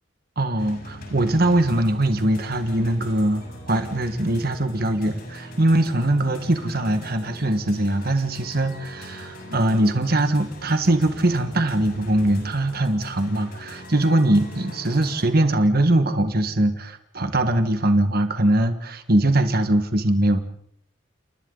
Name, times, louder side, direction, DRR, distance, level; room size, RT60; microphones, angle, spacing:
voice 1, 0.4-20.4, right 1 dB, 50° right, 8 dB, 1.7 m, -21 dB
sound 1, 0.6-15.3, equal, 50° left, 6.8 m, -40 dB
29.5 x 29.5 x 4.0 m, 0.63 s
head